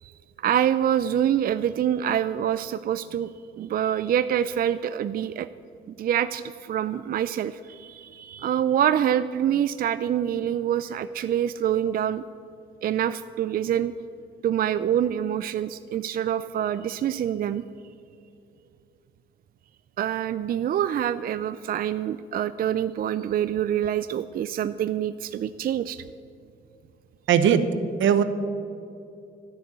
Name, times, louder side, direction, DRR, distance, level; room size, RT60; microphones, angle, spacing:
voice 1, 0.4-3.3 3.6-5.5 5.9-12.2 12.8-13.9 14.4-17.6 20.0-26.0, right 10 dB, 50° right, 13 dB, 0.4 m, -26 dB
voice 2, 27.3-27.7 28.0-28.2, right 8 dB, 75° right, 11 dB, 0.9 m, -18 dB
11.5 x 6.7 x 9.6 m, 2.5 s
cardioid pair, 90°, 20 cm